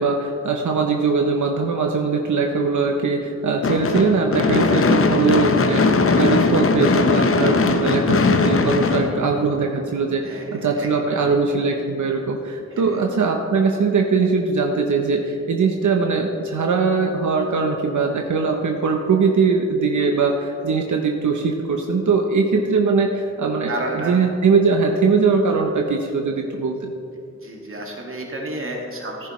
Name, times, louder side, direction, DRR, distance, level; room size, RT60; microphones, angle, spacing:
voice 1, 0.0-26.9, right 4 dB, 85° right, 2 dB, 0.7 m, -21 dB
Gunshot gunfire / Fireworks, 3.6-9.9, left 4 dB, 50° left, 0.6 m, -19 dB
voice 2, 10.2-11.3 12.7-13.0 23.7-24.2 27.4-29.3, right 1 dB, 45° right, -1 dB, 2.0 m, -31 dB
14.5 x 10.0 x 3.1 m, 2.7 s
wide cardioid pair, 95°, 29 cm